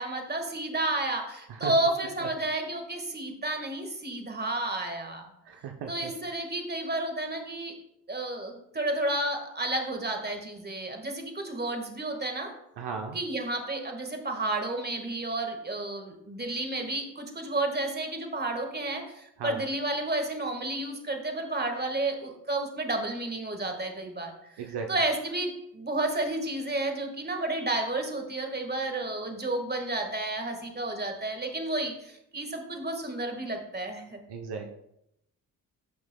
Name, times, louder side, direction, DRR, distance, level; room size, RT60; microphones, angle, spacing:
voice 1, 0.0-5.3 5.9-7.7 8.1-12.5 13.1-24.3 24.6-34.2, right 2 dB, 20° right, 4 dB, 1.8 m, -31 dB
voice 2, 5.5-6.1 12.8-13.2 19.4-19.6 24.6-24.9 34.3-34.7, right 6 dB, 65° right, 3 dB, 0.9 m, -36 dB
12.0 x 6.1 x 2.3 m, 0.79 s
hypercardioid pair, 45°, 44 cm